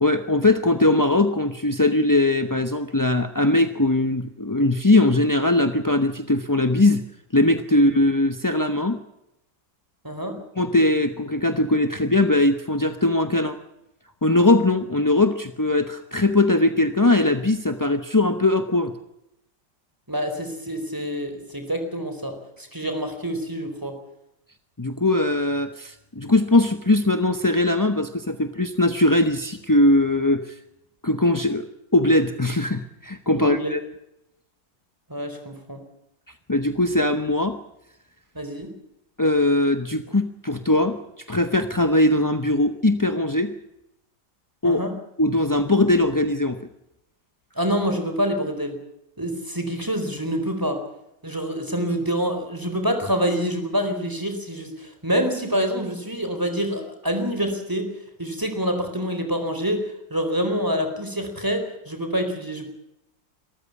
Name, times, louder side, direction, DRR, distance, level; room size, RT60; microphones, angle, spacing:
voice 1, 0.0-7.0 7.3-9.0 10.6-13.6 14.2-18.9 24.8-30.5 31.0-31.7 31.9-33.8 36.5-37.6 39.2-41.0 41.3-43.5 44.6-44.8 45.2-46.6, left 2 dB, 20° left, 8 dB, 0.5 m, -20 dB
voice 2, 10.0-10.4 20.1-23.9 33.4-33.7 35.1-35.8 38.3-38.7 44.6-44.9 47.6-48.8 49.2-50.8 51.2-57.9 58.2-62.7, equal, 10° right, 6 dB, 4.2 m, -26 dB
23.5 x 14.0 x 8.5 m, 0.84 s
omnidirectional pair, 2.1 m